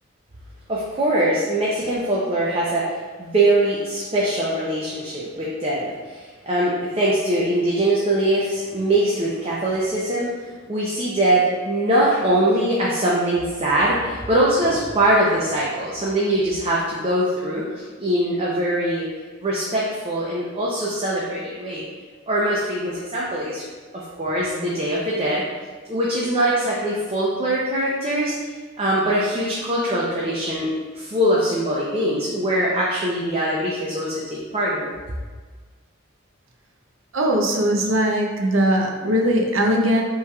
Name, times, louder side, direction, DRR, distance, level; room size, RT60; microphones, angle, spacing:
voice 1, 0.7-19.1 19.4-21.9 22.3-23.7 23.9-25.4 25.9-28.3 28.8-30.7 30.9-34.9, right 1 dB, 30° right, -6 dB, 0.6 m, -22 dB
voice 2, 37.1-40.0, equal, 75° right, 1 dB, 0.6 m, -20 dB
5.5 x 3.2 x 2.3 m, 1.4 s
head